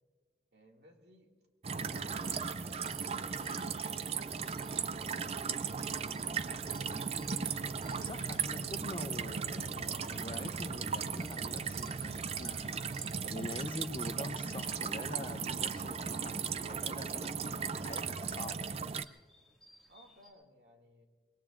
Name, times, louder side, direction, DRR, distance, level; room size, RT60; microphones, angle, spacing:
voice 1, 0.5-1.3 19.9-21.1, equal, 75° right, 1 dB, 2.1 m, -62 dB
sound 1, 1.6-19.0, right 6 dB, 35° right, 0.4 m, -37 dB
sound 2, 1.7-20.3, left 2 dB, ahead, 2.0 m, -64 dB
voice 2, 8.0-12.8 13.3-18.7, left 2 dB, 30° left, 9 dB, 0.6 m, -45 dB
25.5 x 21.5 x 2.5 m, 1.5 s
head